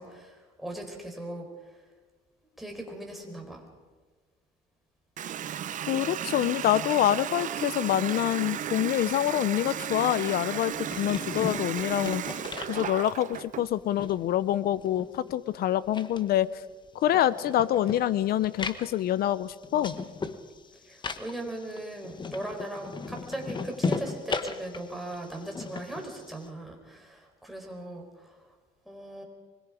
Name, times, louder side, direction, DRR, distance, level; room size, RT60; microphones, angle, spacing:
voice 1, 0.0-1.5 2.6-3.6 20.8-28.4 28.9-29.2, right 1 dB, ahead, 1 dB, 4.5 m, -39 dB
Water tap faucet, 5.2-13.7, right 10 dB, 50° right, 0.7 m, -34 dB
voice 2, 5.9-12.2 12.6-16.5 16.9-19.9, left 12 dB, 65° left, 16 dB, 0.9 m, -26 dB
sound 1, 10.7-13.3 13.7-15.5 15.8-26.5, left 4 dB, 25° left, 1.2 m, -37 dB
24.5 x 21.5 x 5.0 m, 1.4 s
cardioid pair, 110°, 17 cm